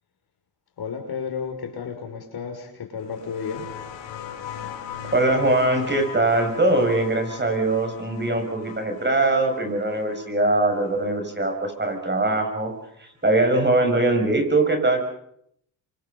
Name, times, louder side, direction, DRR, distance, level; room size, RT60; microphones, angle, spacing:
voice 1, 0.8-3.7, left 6 dB, 55° left, 5 dB, 5.7 m, -32 dB
sound 1, 3.0-12.2 13.4-13.5, left 9 dB, 70° left, 4.5 m, -39 dB
voice 2, 5.1-12.7 13.0-15.0, right 2 dB, 25° right, 5 dB, 7.1 m, -22 dB
28.5 x 24.5 x 5.5 m, 0.72 s
supercardioid pair, 75°, 45 cm